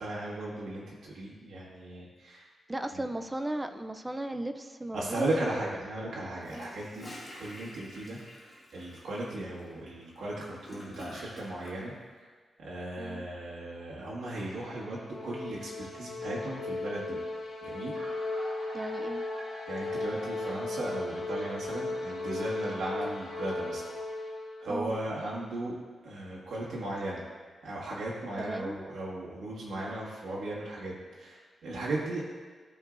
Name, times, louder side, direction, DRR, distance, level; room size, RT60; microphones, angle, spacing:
voice 1, 0.0-2.5 4.9-11.9 12.6-17.2 17.6-17.9 19.7-23.9 24.6-25.8 26.0-27.3 27.6-32.2, right 1 dB, 85° right, -6 dB, 1.6 m, -36 dB
voice 2, 2.7-5.6 6.5-6.7 13.0-13.3 18.7-19.2 24.7-25.0 28.4-28.8 31.7-31.9, right 1 dB, 10° right, 7 dB, 0.3 m, -36 dB
Gurgling / Toilet flush, 6.4-11.7, equal, 15° left, 1.5 m, -48 dB
sound 1, 14.2-24.8, left 2 dB, 75° left, 1.2 m, -36 dB
sound 2, 15.9-16.1 17.0-17.1 17.3-17.4 17.7-24.1, right 1 dB, 60° right, 1.9 m, -49 dB
13.0 x 4.6 x 2.5 m, 1.5 s
wide cardioid pair, 170°, 0 cm